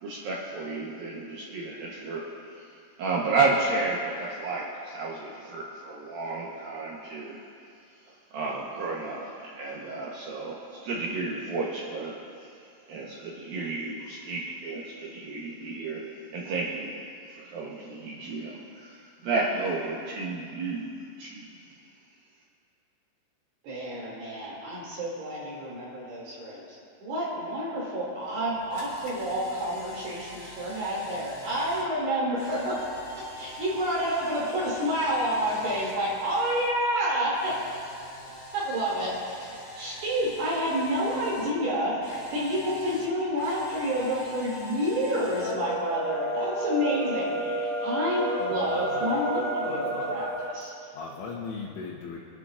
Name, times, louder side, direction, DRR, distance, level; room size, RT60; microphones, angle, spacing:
voice 1, 0.0-2.7 3.0-7.4 8.3-12.2 12.9-17.0 17.3-21.5, right 3 dB, 90° right, -4 dB, 2.0 m, -32 dB
voice 2, 23.6-26.7 27.0-32.8 33.1-37.5 38.5-50.3 50.5-50.7, equal, 60° right, -7 dB, 4.2 m, -29 dB
Camera, 28.3-36.7 37.0-41.5 42.0-45.5, equal, 50° left, 0.9 m, -43 dB
sound 1, 45.2-50.5, right 1 dB, 45° right, 1.1 m, -30 dB
voice 3, 48.5-50.3 50.9-52.2, left 4 dB, 75° left, -5 dB, 3.5 m, -39 dB
28.5 x 10.5 x 2.5 m, 2.5 s
omnidirectional pair, 5.9 m